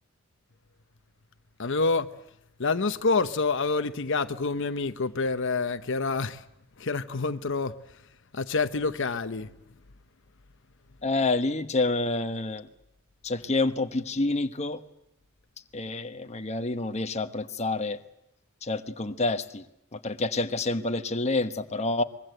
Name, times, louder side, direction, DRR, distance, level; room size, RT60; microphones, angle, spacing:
voice 1, 1.6-2.1 2.6-6.4 6.8-8.0 8.3-9.5, left 4 dB, 60° left, 0.9 m, -27 dB
voice 2, 11.0-12.7 13.2-14.8 15.7-18.0 18.6-19.6 19.9-22.0, left 2 dB, 30° left, 1.1 m, -28 dB
24.0 x 21.5 x 7.8 m
head